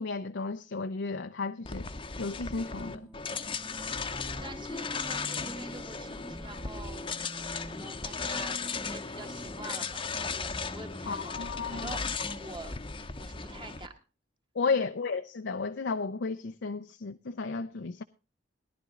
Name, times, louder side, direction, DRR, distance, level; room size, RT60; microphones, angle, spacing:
voice 1, 0.0-1.9 2.2-3.1 11.1-12.0 14.6-18.0, left 4 dB, 80° left, 0.6 m, -33 dB
sound 1, 1.6-13.9, left 4 dB, 30° left, 0.8 m, -36 dB
sound 2, 2.9-12.8, right 1 dB, ahead, 0.9 m, -47 dB
voice 2, 4.3-7.2 7.6-12.8 13.2-13.9 14.6-14.8, right 2 dB, 25° right, 1.6 m, -47 dB
17.5 x 11.5 x 3.7 m
head